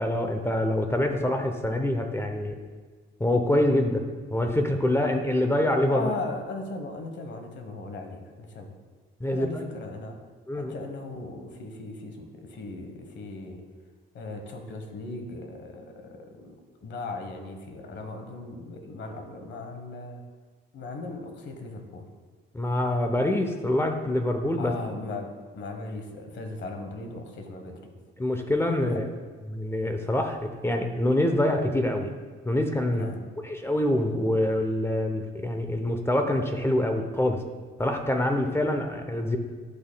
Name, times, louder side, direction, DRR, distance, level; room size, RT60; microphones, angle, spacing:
voice 1, 0.0-2.6 3.2-4.0 4.3-6.1 9.2-9.5 10.5-10.7 22.5-24.7 28.2-29.0 29.5-32.1 32.4-33.1 33.4-37.4 37.8-39.4, left 1 dB, 10° left, 4 dB, 0.7 m, -25 dB
voice 2, 5.9-8.8 9.3-10.2 10.5-13.7 14.1-20.2 20.7-22.1 24.6-27.9 28.8-29.1 32.9-33.2, left 3 dB, 70° left, 5 dB, 1.2 m, -38 dB
12.0 x 5.5 x 2.2 m, 1.5 s
cardioid pair, 90°, 20 cm